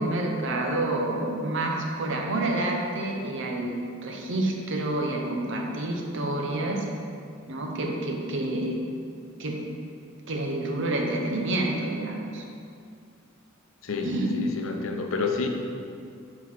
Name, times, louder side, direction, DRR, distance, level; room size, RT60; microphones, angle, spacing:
voice 1, 0.0-6.8 7.5-8.7 9.4-9.6 10.3-12.4 14.0-14.3, right 2 dB, 65° right, 0 dB, 0.8 m, -28 dB
voice 2, 13.8-15.5, left 4 dB, 70° left, 4 dB, 0.6 m, -29 dB
4.8 x 3.8 x 5.6 m, 2.3 s
head